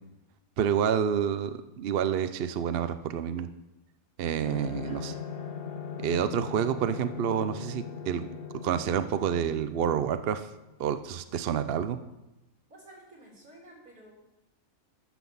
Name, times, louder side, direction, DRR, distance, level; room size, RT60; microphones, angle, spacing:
voice 1, 0.6-3.5 4.2-5.1 6.0-8.3 8.6-10.5 10.8-12.0, right 8 dB, 55° right, 11 dB, 0.7 m, -28 dB
sound 1, 4.4-10.7, left 7 dB, 50° left, 0.8 m, -40 dB
voice 2, 4.4-5.3 12.7-14.1, right 1 dB, 80° right, -3 dB, 4.1 m, -52 dB
13.0 x 6.2 x 7.1 m, 0.98 s
omnidirectional pair, 1.5 m